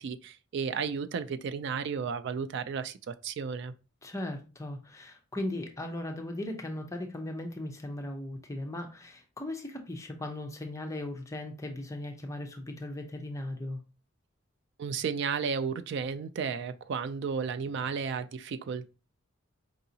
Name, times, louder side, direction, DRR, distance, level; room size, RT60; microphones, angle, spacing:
voice 1, 0.0-3.7 14.8-18.9, right 6 dB, 60° right, 0.3 m, -33 dB
voice 2, 4.0-13.8, left 1 dB, 15° left, 0.5 m, -38 dB
4.8 x 2.7 x 2.6 m
head